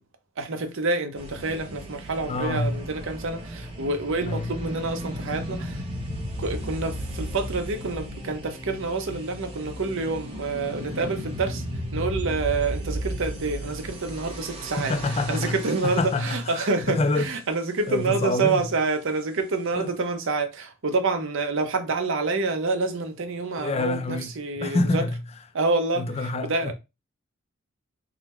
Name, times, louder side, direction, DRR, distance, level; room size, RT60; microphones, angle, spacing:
voice 1, 0.4-5.8 6.4-11.6 11.9-25.0 25.5-26.7, right 3 dB, 60° right, 0.7 m, -27 dB
sound 1, 1.1-16.4, equal, 25° right, 1.2 m, -35 dB
voice 2, 2.3-2.8 4.2-4.5 14.8-15.6 15.8-17.3 17.9-18.6 19.8-19.9 23.6-25.2 25.9-26.7, left 2 dB, 30° left, 0.4 m, -27 dB
3.8 x 2.1 x 4.3 m
head